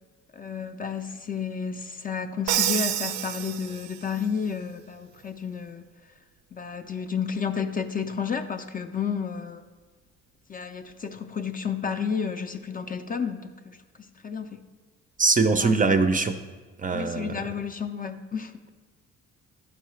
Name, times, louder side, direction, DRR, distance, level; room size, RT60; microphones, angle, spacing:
voice 1, 0.3-5.8 6.5-9.6 10.5-14.6 15.6-15.8 16.9-18.5, left 6 dB, 30° left, 8 dB, 0.4 m, -31 dB
Crash cymbal, 2.5-4.2, right 11 dB, 80° right, 0.5 m, -28 dB
voice 2, 15.2-16.4 16.8-17.4, right 4 dB, 30° right, 8 dB, 0.4 m, -22 dB
10.5 x 4.7 x 3.1 m, 1.4 s
cardioid pair, 90°, 30 cm